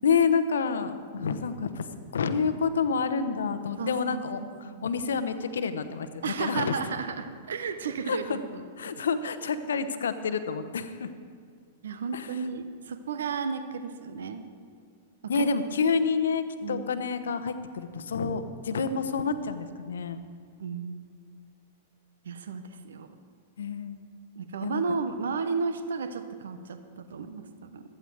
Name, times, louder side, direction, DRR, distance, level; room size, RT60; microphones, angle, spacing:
voice 1, 0.0-1.9 2.1-6.8 8.1-8.4 8.8-11.1 12.1-12.4 15.3-20.2 23.6-24.1 24.6-24.8, left 5 dB, 65° left, 11 dB, 0.9 m, -28 dB
voice 2, 3.8-4.9 6.2-8.6 11.8-14.4 15.2-15.5 16.6-16.9 20.6-21.2 22.2-23.1 24.4-27.8, right 5 dB, 65° right, 10 dB, 0.9 m, -33 dB
15.5 x 12.5 x 4.7 m, 2.1 s
figure-of-eight pair, 100°, 0 cm